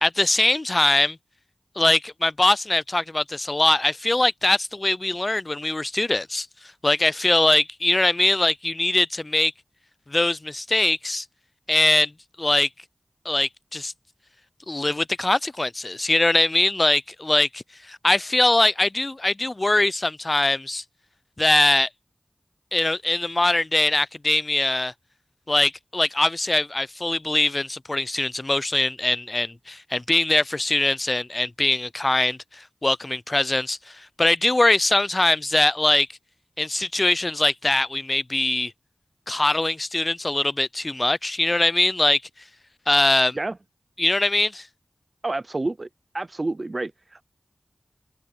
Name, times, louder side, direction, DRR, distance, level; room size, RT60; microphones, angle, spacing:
voice 1, 0.0-1.2 1.8-6.5 6.8-9.5 10.1-11.2 11.7-12.1 12.4-12.7 13.3-13.9 14.7-20.8 21.4-21.9 22.7-24.9 25.5-36.1 36.6-38.7 39.3-42.2 42.9-43.4 44.0-44.6, left 2 dB, 35° left, 0.4 m, -22 dB
voice 2, 45.2-45.9 46.1-47.2, right 2 dB, 45° right, 0.4 m, -29 dB
open air
wide cardioid pair, 50°, 0 cm